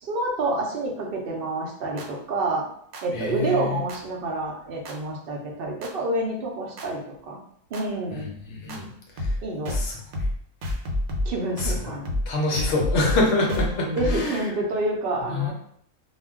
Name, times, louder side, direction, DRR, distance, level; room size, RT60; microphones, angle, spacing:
voice 1, 0.0-2.6 3.0-7.4 7.7-8.3 9.4-9.8 11.3-12.1 14.0-15.5, right 2 dB, 60° right, 0 dB, 0.6 m, -28 dB
sound 1, 2.0-2.1 2.9-3.0 3.9-4.0 4.9-5.0 5.8-5.9 6.8-6.9 7.7-7.8 8.7-8.8 9.2-9.4 9.7-9.9 10.1-10.4 10.6-11.3 11.6-11.8 12.1-12.3 12.5-14.4, left 1 dB, 80° right, 1.0 m, -28 dB
voice 2, 3.1-3.8 8.1-8.9 9.2-9.3 9.7-9.9 11.6-11.8 12.3-14.5 15.3-15.5, left 2 dB, 65° left, 0 dB, 0.8 m, -26 dB
2.3 x 2.1 x 3.4 m, 0.68 s
omnidirectional pair, 1.5 m